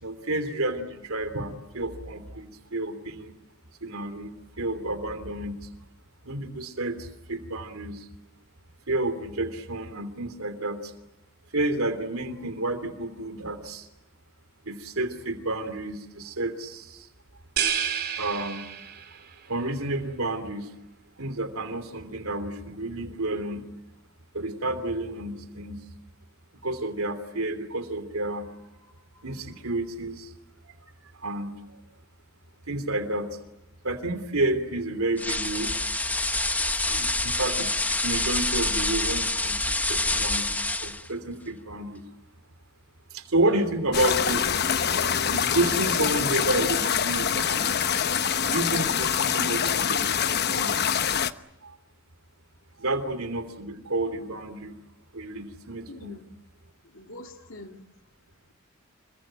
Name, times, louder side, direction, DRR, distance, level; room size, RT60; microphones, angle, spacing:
voice 1, 0.0-3.3 3.8-5.7 6.2-8.1 8.9-10.9 11.5-13.9 14.6-17.1 18.2-18.6 19.5-20.7 21.2-23.6 24.3-25.8 26.6-30.3 31.2-31.8 32.7-33.4 33.8-35.7 36.7-42.0 43.1-44.4 45.3-47.8 48.5-50.9 51.6-51.8 52.8-54.7 55.1-56.1, right 2 dB, 80° right, 10 dB, 3.1 m, -30 dB
sound 1, 17.6-19.3, right 8 dB, 50° right, 3.5 m, -29 dB
sound 2, 35.2-41.1, left 2 dB, 10° left, 1.2 m, -27 dB
voice 2, 36.9-37.2 55.9-56.2 56.9-57.8, left 2 dB, 65° left, 4 dB, 2.4 m, -44 dB
sound 3, 43.9-51.3, left 7 dB, 50° left, 1.0 m, -25 dB
27.5 x 23.0 x 8.8 m, 0.93 s
head